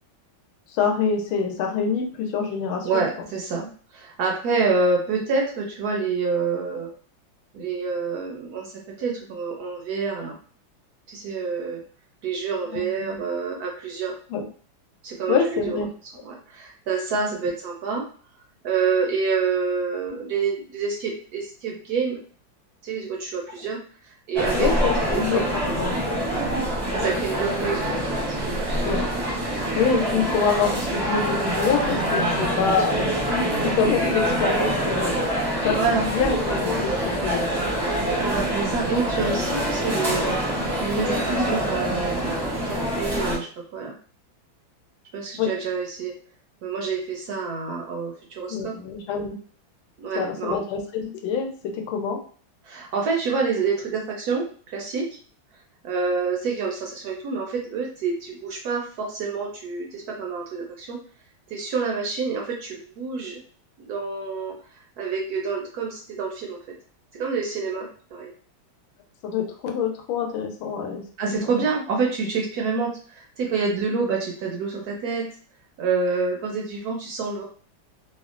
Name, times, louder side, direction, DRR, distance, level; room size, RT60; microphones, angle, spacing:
voice 1, 0.7-3.0 12.7-13.2 14.3-14.5 15.3-15.9 24.6-26.2 27.9-28.0 28.8-29.0 29.7-35.8 36.0-37.8 45.4-45.5 48.5-49.4 50.1-52.2 69.2-71.5, left 6 dB, 85° left, 3 dB, 1.5 m, -26 dB
voice 2, 2.8-6.9 7.5-10.4 11.1-11.8 12.2-14.1 15.0-15.8 16.2-18.0 18.6-22.2 22.8-23.8 24.3-24.7 25.1-25.4 26.3-26.5 26.9-28.7 35.7-36.0 38.3-40.4 40.8-43.5 43.7-44.0 45.1-46.1 46.6-48.7 50.0-50.6 52.6-54.5 54.7-55.0 55.8-61.0 61.5-63.4 63.8-64.5 65.0-66.6 67.1-68.3 71.2-75.2 75.8-77.4, right 4 dB, 70° right, 0 dB, 0.9 m, -27 dB
sound 1, 24.3-43.4, equal, 25° right, 0.5 m, -25 dB
sound 2, 27.0-42.8, right 5 dB, 90° right, 1.4 m, -40 dB
3.5 x 2.1 x 2.4 m, 0.44 s
omnidirectional pair, 2.2 m